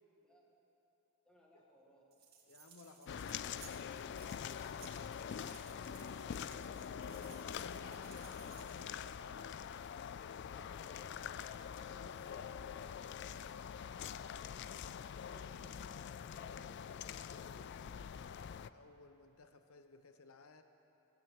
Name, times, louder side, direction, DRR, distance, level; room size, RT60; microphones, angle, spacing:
voice 1, 1.2-2.2 10.2-11.9 14.3-17.9, equal, 5° left, -3 dB, 2.1 m, -65 dB
sound 1, 2.1-9.0, right 7 dB, 45° right, 2.2 m, -60 dB
voice 2, 2.5-3.7 7.1-9.0 11.9-12.8 18.7-20.6, left 3 dB, 80° left, 8 dB, 0.8 m, -57 dB
sound 2, 3.1-18.7, left 8 dB, 55° left, 0.3 m, -45 dB
sound 3, 5.2-13.4, equal, 20° right, 2.7 m, -71 dB
16.5 x 9.2 x 8.2 m, 3.0 s
head